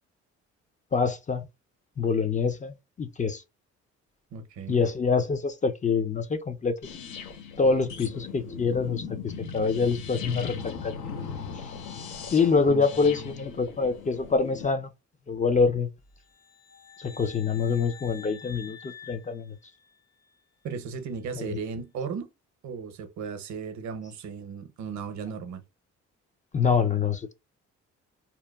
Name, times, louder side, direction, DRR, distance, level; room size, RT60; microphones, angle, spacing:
voice 1, 0.9-1.4 2.0-3.4 4.7-6.7 7.6-10.9 12.3-14.9 15.3-15.9 17.0-19.6 21.4-21.6 26.5-27.3, left 5 dB, 25° left, 0.3 m, -25 dB
voice 2, 4.3-4.8 12.7-13.4 20.6-22.3 22.6-25.6, right 5 dB, 70° right, 0.6 m, -36 dB
sound 1, 6.8-14.7, left 6 dB, 85° left, 0.7 m, -39 dB
sound 2, 16.2-20.2, left 7 dB, 55° left, 1.1 m, -48 dB
2.8 x 2.2 x 2.2 m
cardioid pair, 90°, 30 cm